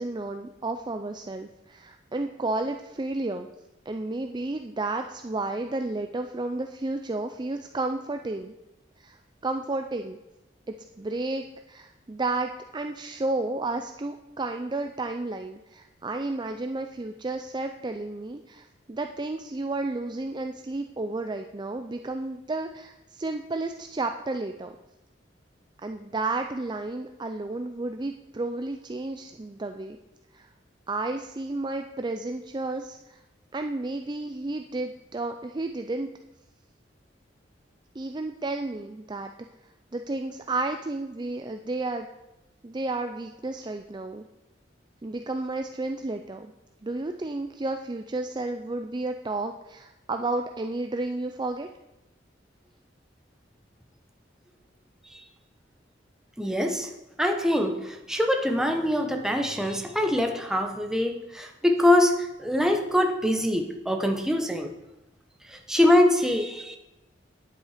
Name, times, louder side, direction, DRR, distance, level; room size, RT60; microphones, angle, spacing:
voice 1, 0.0-3.5 3.9-8.5 9.0-9.2 9.4-10.2 10.7-24.8 25.8-30.0 30.3-30.5 30.9-33.2 33.5-36.1 37.9-39.3 39.9-42.1 42.6-44.2 45.0-46.5 46.8-51.7, right 2 dB, 25° right, 6 dB, 0.5 m, -32 dB
voice 2, 56.4-56.9 57.2-62.1 62.4-64.7 65.5-66.8, left 1 dB, 5° right, 3 dB, 1.1 m, -24 dB
10.0 x 8.5 x 5.0 m, 0.96 s
head